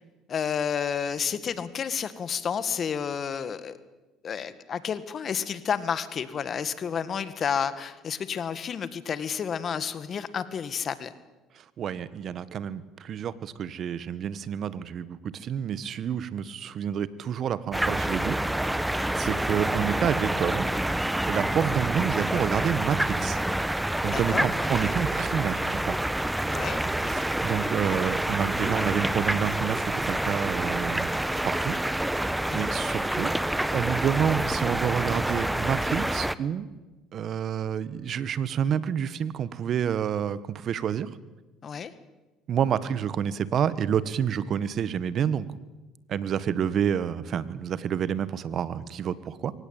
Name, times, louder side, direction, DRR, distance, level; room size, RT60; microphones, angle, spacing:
voice 1, 0.3-3.8 4.2-11.1 24.1-24.5 26.5-26.8 32.5-32.7 41.6-41.9, left 7 dB, 45° left, 14 dB, 1.9 m, -30 dB
voice 2, 11.8-18.4 19.2-20.7 21.2-23.4 24.0-26.0 27.1-31.7 32.5-33.3 33.7-36.7 37.1-41.1 42.5-45.5 46.1-49.5, right 8 dB, 55° right, 16 dB, 1.5 m, -28 dB
sound 1, 17.7-36.3, right 1 dB, 5° right, 1.1 m, -27 dB
23.5 x 18.0 x 9.0 m, 1.1 s
supercardioid pair, 75°, 0 cm